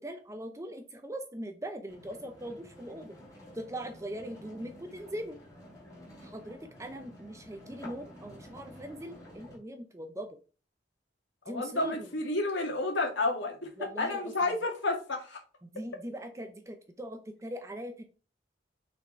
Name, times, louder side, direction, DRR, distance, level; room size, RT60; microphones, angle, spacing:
voice 1, 0.0-3.1 3.5-5.4 6.2-10.4 11.5-12.0 13.8-14.3 15.6-18.0, right 1 dB, 15° right, 6 dB, 0.6 m, -41 dB
sound 1, 1.9-9.6, left 1 dB, 20° left, 2.9 m, -51 dB
voice 2, 11.5-13.7 14.0-15.4, left 2 dB, 75° left, 2 dB, 1.8 m, -30 dB
6.1 x 4.2 x 4.5 m, 0.36 s
head